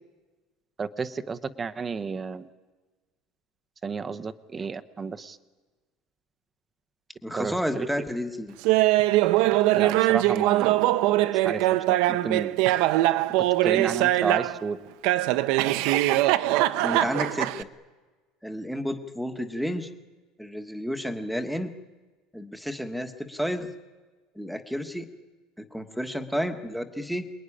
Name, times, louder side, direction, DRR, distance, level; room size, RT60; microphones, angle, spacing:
voice 1, 0.8-2.4 3.8-5.4 7.3-7.9 9.7-10.7 11.4-12.5 13.6-14.8, right 5 dB, 15° right, 12 dB, 0.9 m, -32 dB
voice 2, 7.2-8.5 16.8-17.7 18.4-19.9 20.4-21.7 22.3-23.7 24.3-25.1 25.7-27.3, equal, ahead, 6 dB, 1.4 m, -31 dB
Laughter, 8.7-14.6 15.0-17.6, right 16 dB, 65° right, 0.9 m, -22 dB
27.0 x 21.5 x 10.0 m, 1.3 s
cardioid pair, 170°, 0 cm